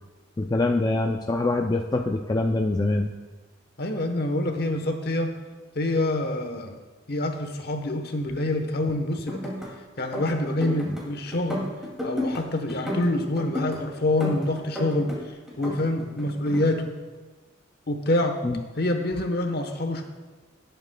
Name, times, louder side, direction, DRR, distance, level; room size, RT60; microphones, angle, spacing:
voice 1, 0.4-3.1 18.4-18.6, left 2 dB, 20° left, 3 dB, 0.4 m, -24 dB
voice 2, 3.8-5.3 5.7-6.8 7.1-9.5 10.0-11.7 12.0-15.1 15.6-17.0 17.9-18.4 18.8-20.0, left 1 dB, 55° left, 5 dB, 1.0 m, -26 dB
sound 1, 9.1-9.7 10.0-11.0 11.3-12.4 12.7-13.8 14.2-15.2 15.5-16.6, left 1 dB, 5° right, 2.4 m, -32 dB
18.5 x 8.0 x 2.2 m, 1.3 s
head